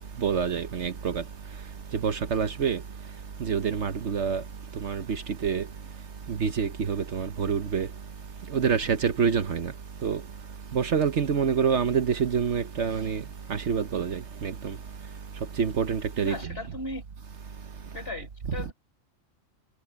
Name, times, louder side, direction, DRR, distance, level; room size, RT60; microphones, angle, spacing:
voice 1, 0.2-1.2 2.0-2.8 3.4-4.4 4.8-5.6 6.3-7.9 8.5-9.7 10.0-10.2 10.7-13.2 13.5-14.7 15.6-16.5, right 6 dB, 60° right, 1.3 m, -27 dB
voice 2, 16.2-17.0 17.9-18.7, left 2 dB, 45° left, 6.8 m, -37 dB
omnidirectional pair, 1.3 m